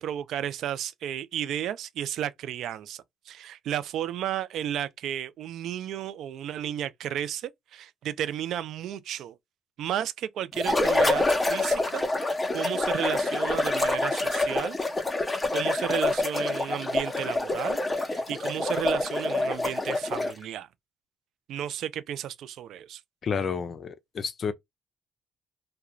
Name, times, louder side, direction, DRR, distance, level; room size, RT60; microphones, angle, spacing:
voice 1, 0.0-9.4 9.8-12.0 12.5-14.8 15.5-20.7 21.5-23.0, right 11 dB, 75° right, 0.3 m, -33 dB
sound 1, 10.6-20.4, left 2 dB, 20° left, 0.7 m, -27 dB
voice 2, 23.2-24.5, left 6 dB, 50° left, 0.4 m, -30 dB
2.4 x 2.2 x 2.8 m
supercardioid pair, 75°, 0 cm